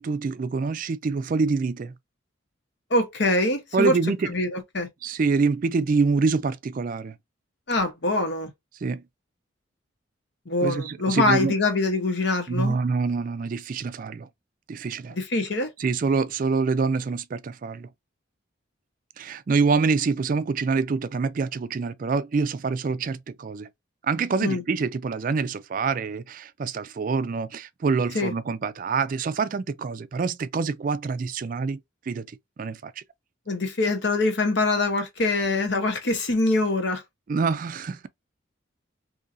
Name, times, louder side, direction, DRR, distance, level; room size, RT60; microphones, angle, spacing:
voice 1, 0.0-1.9 3.7-4.3 5.0-7.1 8.8-9.0 10.6-11.5 12.5-14.3 14.7-15.1 15.8-17.9 19.2-23.7 24.0-31.8 32.1-32.2 32.6-33.0 37.3-38.1, right 4 dB, 40° right, 0.3 m, -26 dB
voice 2, 2.9-4.0 4.3-4.9 7.7-8.5 10.5-12.8 15.1-15.7 24.4-24.6 28.1-28.3 33.5-37.0, left 2 dB, 60° left, 1.0 m, -24 dB
3.8 x 2.8 x 2.5 m
head